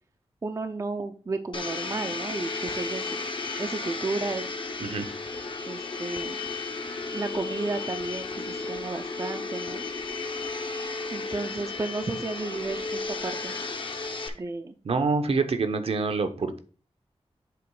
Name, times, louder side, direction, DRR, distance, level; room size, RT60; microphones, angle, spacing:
voice 1, 0.4-3.2 3.6-4.5 5.7-6.4 7.1-9.8 11.1-13.6 14.3-14.8, right 3 dB, 30° right, 7 dB, 0.4 m, -33 dB
Domestic sounds home sounds, 1.5-14.3, left 3 dB, 50° left, 0.8 m, -34 dB
voice 2, 14.8-16.6, right 4 dB, 60° right, 9 dB, 0.7 m, -26 dB
7.7 x 3.0 x 4.7 m, 0.38 s
wide cardioid pair, 145°, 11 cm